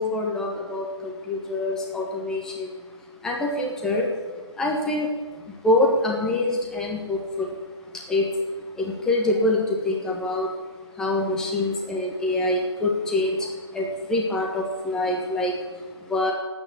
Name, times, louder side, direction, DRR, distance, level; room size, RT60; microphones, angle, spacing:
voice 1, 0.0-2.8 3.2-4.1 4.5-5.1 5.5-7.5 7.9-8.3 8.7-10.5 10.9-16.3, left 2 dB, 5° left, -1 dB, 1.4 m, -25 dB
18.5 x 9.2 x 8.5 m, 1.3 s
figure-of-eight pair, 150°, 15 cm